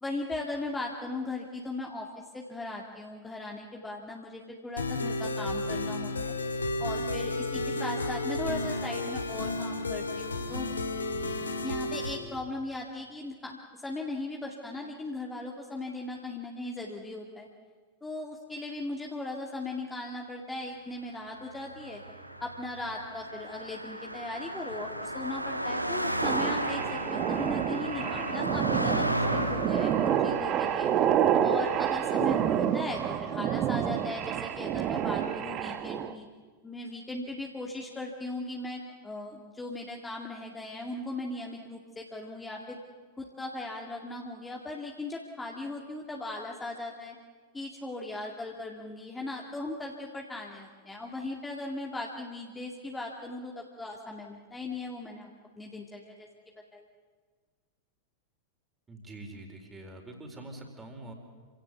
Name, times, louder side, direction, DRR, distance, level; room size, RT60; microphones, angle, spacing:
voice 1, 0.0-2.1 2.3-6.3 6.8-10.7 11.6-17.5 18.0-22.0 22.4-30.9 31.4-36.3 36.6-42.8 43.2-47.2 47.5-55.3 55.6-56.3 56.7-56.9, left 2 dB, 10° left, 0 dB, 2.4 m, -38 dB
sound 1, 4.8-12.2, left 2 dB, 75° left, 2.1 m, -32 dB
Car passing by, 21.4-32.9, right 1 dB, 90° right, 1.3 m, -34 dB
sound 2, 26.2-36.1, right 9 dB, 35° right, 1.2 m, -28 dB
voice 2, 58.9-61.1, right 2 dB, 15° right, 3 dB, 4.4 m, -45 dB
27.5 x 17.0 x 8.3 m, 1.5 s
figure-of-eight pair, 90°, 0 cm